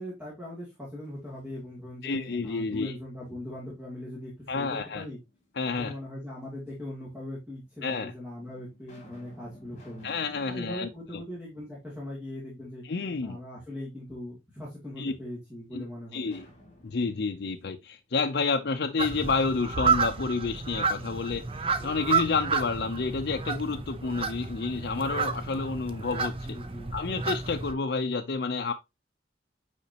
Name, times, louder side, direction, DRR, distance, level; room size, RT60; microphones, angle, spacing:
voice 1, 0.0-5.2 5.6-10.1 10.5-12.8 13.2-16.4 26.4-27.0, left 1 dB, 5° right, 2.5 m, -40 dB
sound 1, 1.0-2.0 2.5-3.7 5.0-5.8 6.7-6.8 7.6-7.7 8.3-12.4 12.8-12.9 16.2-19.0, equal, 40° left, 4.5 m, -56 dB
voice 2, 2.0-2.9 4.5-5.0 5.6-5.9 7.8-8.1 10.0-11.2 12.8-13.4 15.0-15.1 15.7-15.8 16.1-16.5 16.8-26.6 26.9-28.7, left 4 dB, 65° left, 0.5 m, -30 dB
sound 2, 19.0-27.7, right 5 dB, 30° right, 0.6 m, -30 dB
8.4 x 5.0 x 2.8 m
head